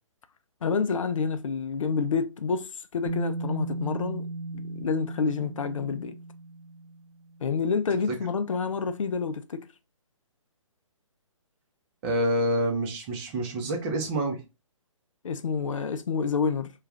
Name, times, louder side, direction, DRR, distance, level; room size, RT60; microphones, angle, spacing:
voice 1, 0.6-4.3 4.5-6.2 7.4-9.7 15.2-16.7, left 5 dB, 70° left, 0.4 m, -28 dB
Bass guitar, 3.1-9.1, right 2 dB, 80° right, 0.5 m, -37 dB
voice 2, 12.0-14.4, right 1 dB, 20° right, 0.6 m, -27 dB
2.3 x 2.2 x 3.4 m
figure-of-eight pair, 140°, 17 cm